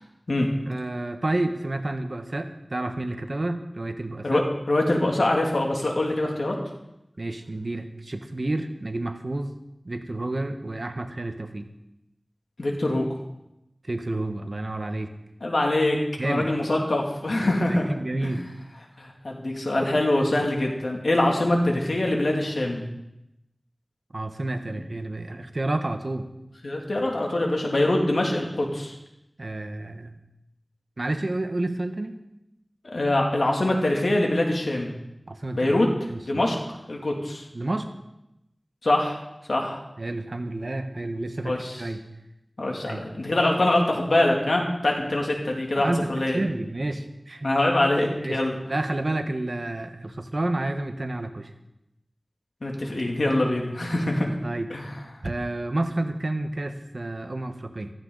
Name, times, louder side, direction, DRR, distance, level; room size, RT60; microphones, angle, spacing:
voice 1, 0.7-4.4 7.2-9.6 9.8-11.7 13.8-15.1 16.2-16.5 17.4-18.4 24.1-26.3 29.4-30.1 31.0-32.2 35.3-35.7 36.1-36.4 37.5-37.9 40.0-42.0 42.8-43.0 45.7-47.5 48.2-48.4 48.7-51.5 54.4-54.7 55.2-57.9, right 2 dB, 60° right, 6 dB, 1.3 m, -30 dB
voice 2, 4.2-6.5 12.6-13.1 15.4-16.0 16.2-17.9 18.2-18.3 19.0-22.8 26.6-28.9 32.8-34.9 35.5-35.9 36.2-36.6 36.9-37.5 38.8-39.2 39.5-39.8 41.4-41.8 42.6-46.4 47.4-48.6 52.6-54.3 54.7-54.9, left 1 dB, 90° left, 0 dB, 2.6 m, -24 dB
15.0 x 14.0 x 4.0 m, 0.88 s
wide cardioid pair, 55°, 0 cm